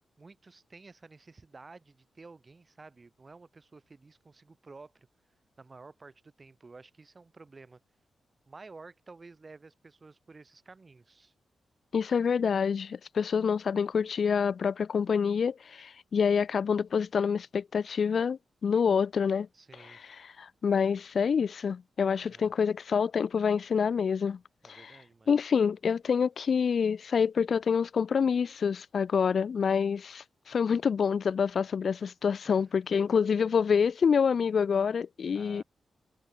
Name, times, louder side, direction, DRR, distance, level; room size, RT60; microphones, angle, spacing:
voice 1, 0.2-5.1 5.6-7.8 8.5-11.3 19.5-20.0 22.2-22.5 24.6-25.3 32.4-32.8 35.3-35.6, right 3 dB, 35° right, 2.8 m, -52 dB
voice 2, 11.9-19.5 19.8-24.4 24.7-24.9 25.3-35.6, left 6 dB, 65° left, 0.4 m, -27 dB
cardioid pair, 70°, 0 cm